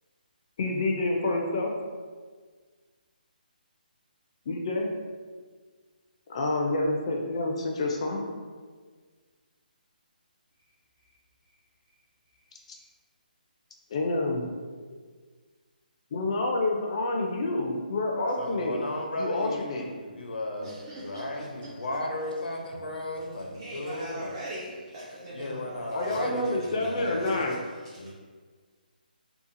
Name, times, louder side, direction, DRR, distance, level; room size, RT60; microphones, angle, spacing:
voice 1, 0.6-1.7 4.5-4.9 6.3-8.2 13.9-14.5 16.1-18.8 19.2-19.9 25.9-27.6, left 2 dB, 40° left, 0.4 m, -28 dB
voice 2, 18.4-24.4 25.3-27.4 28.0-28.1, left 1 dB, 85° left, 0.6 m, -35 dB
voice 3, 20.6-21.3 23.5-25.7 27.0-27.1, right 1 dB, 30° right, 0.4 m, -40 dB
2.7 x 2.4 x 2.5 m
hypercardioid pair, 160°, 5 cm